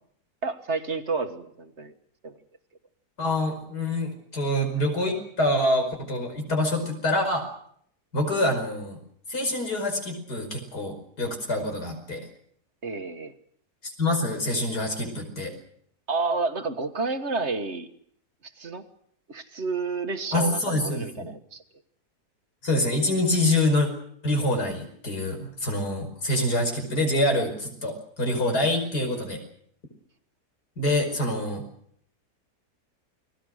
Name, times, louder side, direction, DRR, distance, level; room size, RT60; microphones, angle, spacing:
voice 1, 0.4-1.9 2.2-2.4 12.8-13.3 16.1-17.9 18.4-18.8 19.3-21.6, right 4 dB, 45° right, 7 dB, 1.8 m, -30 dB
voice 2, 3.2-7.5 8.1-9.0 9.3-12.2 13.8-15.5 20.3-21.3 22.6-23.9 24.2-29.4 30.8-31.6, left 1 dB, 80° left, 4 dB, 5.8 m, -26 dB
29.0 x 20.0 x 6.5 m, 0.67 s
omnidirectional pair, 1.7 m